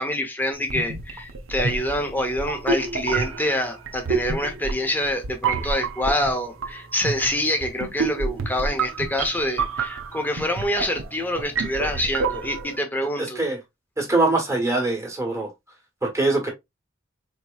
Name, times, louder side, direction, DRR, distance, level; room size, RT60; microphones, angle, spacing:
voice 1, 0.0-13.4, left 1 dB, 10° left, 0.8 m, -26 dB
sound 1, 0.6-12.8, right 4 dB, 70° right, 0.7 m, -29 dB
voice 2, 13.2-13.6 14.0-15.5 16.0-16.5, right 2 dB, 15° right, 1.2 m, -23 dB
4.2 x 3.0 x 2.3 m
head